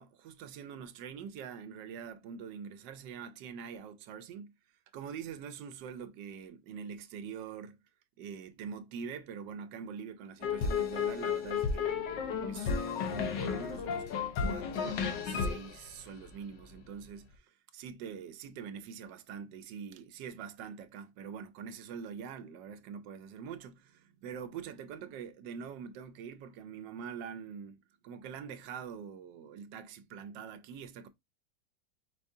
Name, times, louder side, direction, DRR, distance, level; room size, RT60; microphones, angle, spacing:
voice 1, 0.0-4.5 4.9-7.8 8.2-12.8 13.1-14.1 14.4-31.1, right 7 dB, 85° right, 1.3 m, -44 dB
sound 1, 10.4-16.7, left 6 dB, 85° left, 1.5 m, -33 dB
5.2 x 3.4 x 2.6 m
omnidirectional pair, 1.9 m